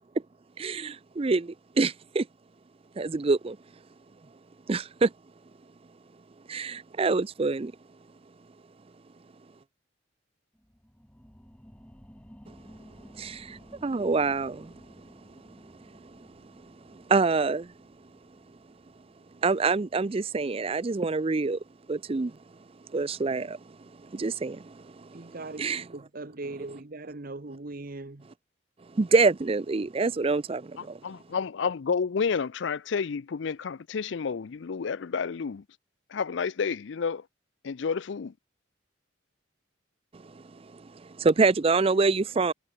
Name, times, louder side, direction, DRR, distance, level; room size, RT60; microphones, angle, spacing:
voice 1, 0.6-2.3 3.0-3.6 4.7-5.1 6.5-7.7 13.2-15.0 16.0-16.1 16.9-17.7 19.4-21.6 21.9-22.4 22.9-23.6 24.0-25.8 28.9-31.0 40.1-42.5, right 4 dB, 30° right, 0.4 m, -26 dB
sound 1, 10.5-21.7 22.1-22.2, equal, 5° left, 2.1 m, -54 dB
voice 2, 25.1-28.3, right 2 dB, 45° right, 1.0 m, -40 dB
voice 3, 31.0-35.6 36.1-37.3 37.6-38.3, left 5 dB, 65° left, 0.5 m, -30 dB
head